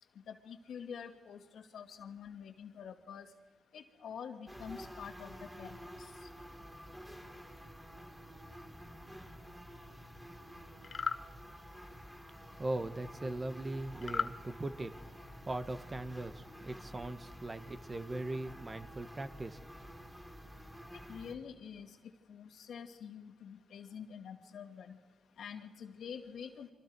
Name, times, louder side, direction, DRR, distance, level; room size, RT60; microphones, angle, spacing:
voice 1, 0.3-3.3 3.7-6.1 21.1-22.0 22.3-25.0 25.4-26.7, left 7 dB, 75° left, 5 dB, 2.1 m, -47 dB
sound 1, 4.5-21.3, equal, 10° right, 4.3 m, -50 dB
sound 2, 10.8-11.2 14.0-14.4, left 5 dB, 50° left, 0.7 m, -34 dB
voice 2, 12.6-14.9 15.4-19.6, right 2 dB, 30° right, 10 dB, 1.4 m, -39 dB
29.5 x 24.5 x 4.7 m, 1.4 s
cardioid pair, 65°, 0 cm